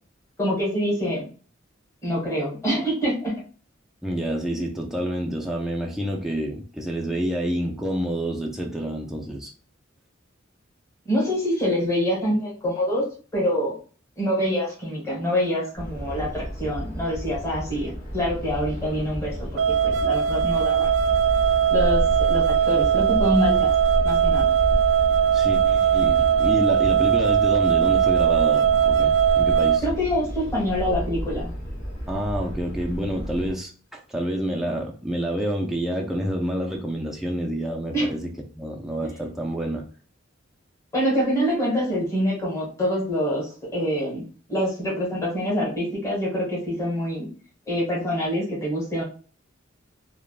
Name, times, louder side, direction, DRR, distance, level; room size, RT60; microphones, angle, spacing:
voice 1, 0.4-1.3 2.0-3.4 11.1-13.1 13.3-13.8 14.2-20.9 21.7-23.7 24.0-24.5 29.8-31.5 37.9-38.1 40.9-47.3 47.7-49.0, equal, 15° left, -5 dB, 1.3 m, -25 dB
voice 2, 4.0-9.5 25.3-29.8 32.1-39.9, equal, ahead, -1 dB, 0.3 m, -28 dB
sound 1, 15.7-33.5, equal, 40° left, 1.1 m, -31 dB
sound 2, 19.6-29.8, right 9 dB, 90° right, 0.3 m, -20 dB
3.3 x 2.2 x 2.4 m, 0.38 s
head